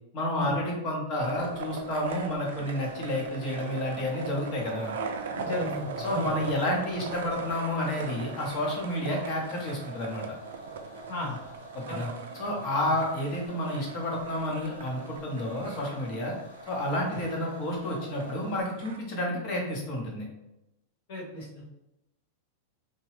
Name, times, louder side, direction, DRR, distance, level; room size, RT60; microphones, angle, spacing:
voice 1, 0.1-5.0 6.0-10.2 11.7-16.3 16.7-20.3, left 1 dB, 35° left, -1 dB, 0.8 m, -30 dB
sound 1, 1.2-19.0, right 5 dB, 85° right, 0.3 m, -40 dB
sound 2, 2.7-18.6, right 2 dB, 90° left, 0.6 m, -47 dB
voice 2, 5.3-6.3 11.1-11.4 11.9-12.0 21.1-21.6, left 2 dB, 60° left, -3 dB, 1.1 m, -34 dB
2.8 x 2.2 x 3.1 m, 0.90 s
supercardioid pair, 165°, 0 cm